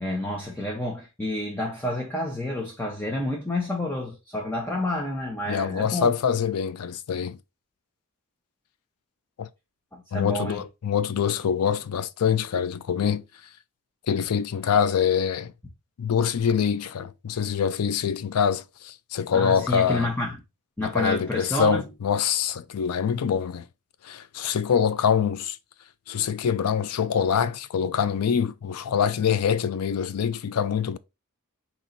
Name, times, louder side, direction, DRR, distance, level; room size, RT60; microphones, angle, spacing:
voice 1, 0.0-6.1 9.9-10.6 19.3-20.4 20.8-21.8, left 1 dB, 10° left, 0.8 m, -29 dB
voice 2, 5.5-7.4 9.4-9.5 10.1-13.2 14.1-15.5 16.0-20.1 20.8-23.7 24.0-25.6 26.1-31.0, left 7 dB, 80° left, 0.4 m, -25 dB
4.3 x 3.0 x 4.0 m
head